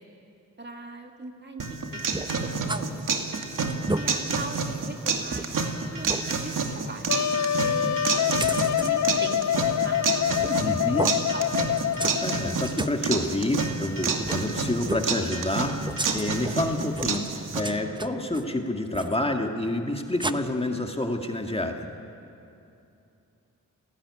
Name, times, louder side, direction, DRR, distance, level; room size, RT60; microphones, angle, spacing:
voice 1, 0.6-2.9 3.9-5.6 5.9-7.2 7.6-8.0 8.5-11.8, right 2 dB, 35° right, 3 dB, 2.6 m, -40 dB
sound 1, 1.6-17.6, right 4 dB, 75° right, 2.6 m, -29 dB
sound 2, 2.1-2.8 3.2-3.3 3.7-4.0 4.6-4.7 5.3-5.4 6.0-6.2 8.4-8.9 10.3-10.6 11.0-11.2 11.8-12.2 12.4-13.0 14.2-14.4 14.8-15.1 15.8-16.6 16.9-17.3 17.6-18.5 18.9-19.2 20.2-20.3, right 2 dB, 15° right, 0.8 m, -32 dB
Wind instrument woodwind instrument, 7.1-12.6, left 10 dB, 60° left, 0.6 m, -26 dB
voice 2, 10.6-11.0 12.2-15.7 16.1-21.9, left 1 dB, 20° left, 3 dB, 2.1 m, -28 dB
29.5 x 18.0 x 9.9 m, 2.7 s
wide cardioid pair, 95°, 32 cm